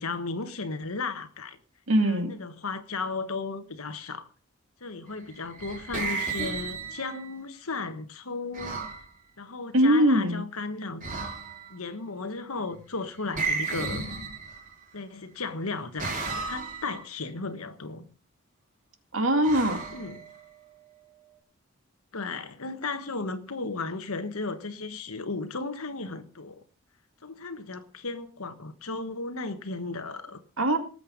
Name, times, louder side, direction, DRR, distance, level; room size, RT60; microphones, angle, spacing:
voice 1, 0.0-1.6 2.0-4.3 4.8-8.8 9.4-11.0 11.7-14.1 14.9-18.1 19.9-20.2 22.1-26.6 27.2-30.4, left 3 dB, 80° left, 1.5 m, -35 dB
voice 2, 1.9-2.3 9.7-10.4 19.1-19.8 30.6-30.8, right 1 dB, 65° right, 2.2 m, -21 dB
sound 1, 5.3-7.3 8.5-9.0 11.0-11.7 13.3-14.8 16.0-17.0 19.4-20.6, right 4 dB, 35° right, 3.4 m, -33 dB
19.0 x 8.1 x 5.2 m
head